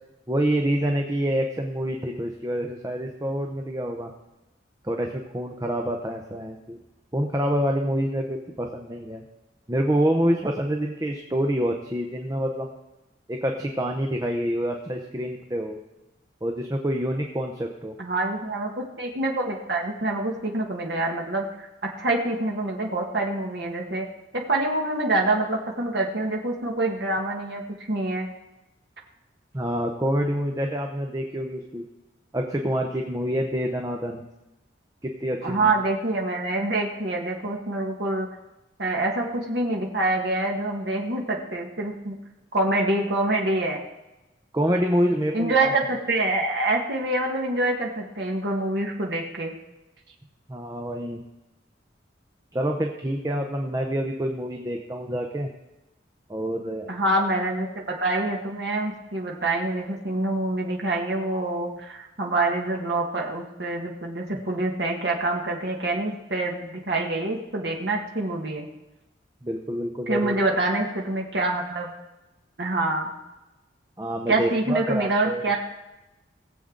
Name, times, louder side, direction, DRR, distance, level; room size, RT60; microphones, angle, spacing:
voice 1, 0.3-4.1 4.8-6.8 7.1-9.2 9.7-12.7 13.3-15.8 16.4-17.9 29.5-31.9 32.3-34.2 35.0-35.7 44.5-45.7 50.5-51.2 52.5-55.5 56.3-56.9 69.4-70.6 74.0-75.4, equal, 20° right, 2 dB, 0.7 m, -27 dB
voice 2, 18.0-24.0 24.3-27.6 27.9-28.3 35.4-38.3 38.8-42.2 42.5-43.8 45.3-49.5 56.9-68.7 70.1-71.9 72.6-73.1 74.3-75.6, right 2 dB, 60° right, 0 dB, 1.6 m, -26 dB
18.5 x 7.7 x 3.9 m, 1.0 s
head